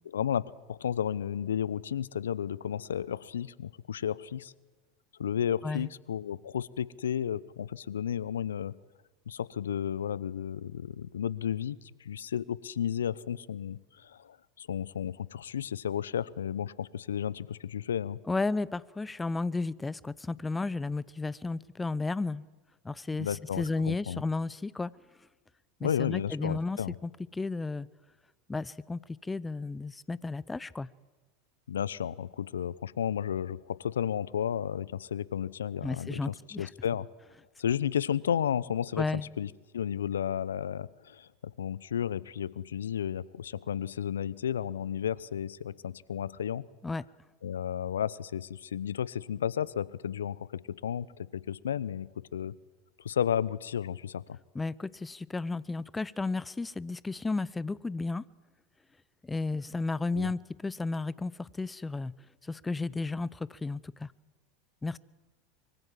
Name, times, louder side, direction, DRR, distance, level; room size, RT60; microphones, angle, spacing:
voice 1, 0.1-4.5 5.2-8.7 9.3-18.2 23.2-24.2 25.8-27.0 31.7-37.1 37.6-39.1 39.4-46.6 47.4-52.5 53.0-54.4 60.1-60.3, left 9 dB, 80° left, 22 dB, 0.8 m, -33 dB
voice 2, 18.3-22.5 22.8-24.9 25.8-27.9 28.5-30.9 35.8-36.7 39.0-39.3 46.8-47.0 54.5-58.2 59.2-62.1 62.4-64.1 64.8-65.0, left 3 dB, 15° left, 22 dB, 0.8 m, -33 dB
24.5 x 24.0 x 7.6 m, 1.3 s
hypercardioid pair, 85°, 0 cm